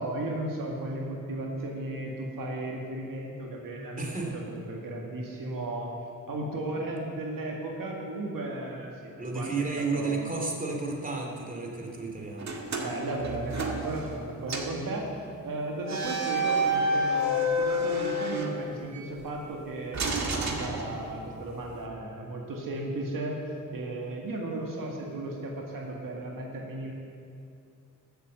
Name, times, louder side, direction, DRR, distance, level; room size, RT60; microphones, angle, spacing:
voice 1, 0.0-5.9 6.3-10.2 12.8-15.1 15.4-20.0 20.4-23.4 23.7-26.9, right 2 dB, 80° right, -1 dB, 2.0 m, -35 dB
voice 2, 4.0-4.3 9.2-12.5, right 3 dB, 25° right, 0 dB, 2.8 m, -32 dB
sound 1, 12.4-14.2 14.5-14.8 15.8-19.1 19.9-21.4, equal, 55° right, 1.8 m, -29 dB
12.5 x 8.2 x 7.8 m, 2.6 s
cardioid pair, 60°, 33 cm